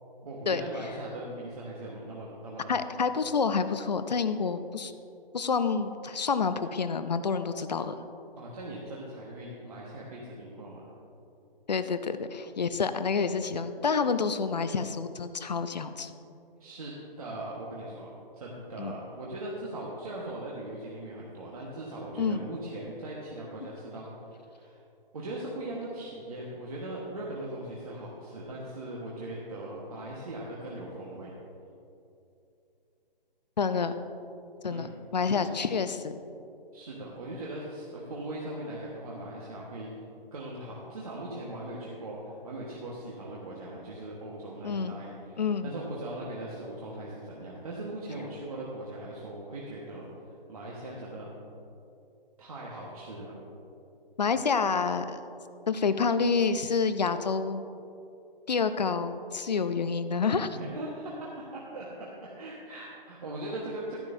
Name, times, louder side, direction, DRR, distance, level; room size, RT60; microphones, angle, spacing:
voice 1, 0.2-2.8 8.4-10.9 16.6-24.1 24.4-24.8 25.1-31.4 34.7-34.9 35.4-35.5 36.7-39.9 40.3-50.1 50.5-51.3 52.4-53.3 60.5-64.0, right 1 dB, 40° right, -5 dB, 1.3 m, -40 dB
voice 2, 2.7-4.9 5.3-7.9 11.7-16.1 18.8-18.9 22.2-22.5 33.6-33.9 34.6-34.9 35.1-36.2 44.6-45.0 45.4-45.7 54.2-55.2 55.7-57.6 58.5-60.6, left 5 dB, 45° left, 11 dB, 0.5 m, -28 dB
14.0 x 10.5 x 2.6 m, 2.7 s
hypercardioid pair, 170°, 29 cm